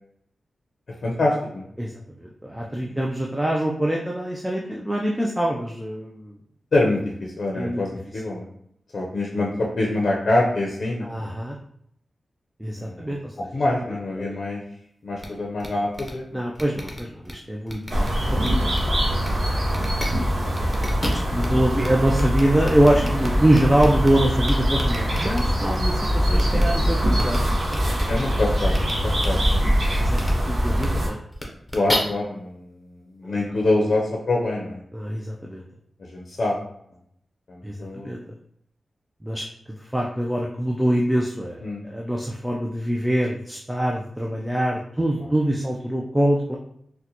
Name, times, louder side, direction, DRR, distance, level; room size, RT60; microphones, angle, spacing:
voice 1, 1.0-1.7 2.8-2.9 6.7-8.5 8.9-11.1 12.8-13.2 13.5-14.6 15.0-16.4 20.4-21.0 28.1-28.7 29.0-29.6 31.7-32.8 33.2-34.8 36.0-36.6 37.5-38.1 41.6-41.8, left 2 dB, 65° left, -1 dB, 0.5 m, -25 dB
voice 2, 2.2-6.4 7.5-7.8 11.0-11.6 12.6-13.5 14.2-14.4 16.3-18.1 18.3-19.0 21.1-28.0 30.0-31.2 34.9-35.6 37.6-37.8 38.0-38.2 39.2-39.4 39.8-46.6, right 1 dB, 10° right, -1 dB, 0.4 m, -24 dB
sound 1, 15.2-15.3 15.6-15.7 15.9-16.1 16.5-17.3 17.7-18.1 18.4-18.8 19.2-19.3 19.7-20.1 20.5-21.5 21.8-21.9 22.1-24.1 24.4-25.4 26.3-26.6 27.1-27.4 27.7-27.8 28.7-28.9 29.2-29.3 30.1-30.3 30.7-30.9 31.3-32.0, left 1 dB, 10° left, 0.7 m, -32 dB
sound 2, 17.9-31.1, equal, 70° right, 1.0 m, -23 dB
3.8 x 2.1 x 2.8 m, 0.72 s
wide cardioid pair, 75°, 0 cm